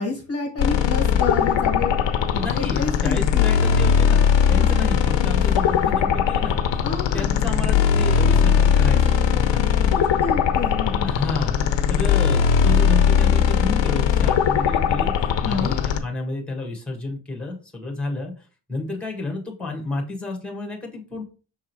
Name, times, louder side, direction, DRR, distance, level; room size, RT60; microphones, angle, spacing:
voice 1, 0.0-1.9 2.3-3.5 4.6-4.7 6.8-7.5 9.9-11.3 15.4-15.8, left 4 dB, 35° left, 1 dB, 1.2 m, -29 dB
sound 1, 0.6-16.0, left 7 dB, 80° left, 1.0 m, -19 dB
voice 2, 2.4-4.2 4.5-6.6 7.1-10.2 11.0-11.6 11.9-18.3 18.7-21.2, left 2 dB, ahead, 1 dB, 1.6 m, -31 dB
6.3 x 3.7 x 4.6 m, 0.37 s
wide cardioid pair, 145°, 43 cm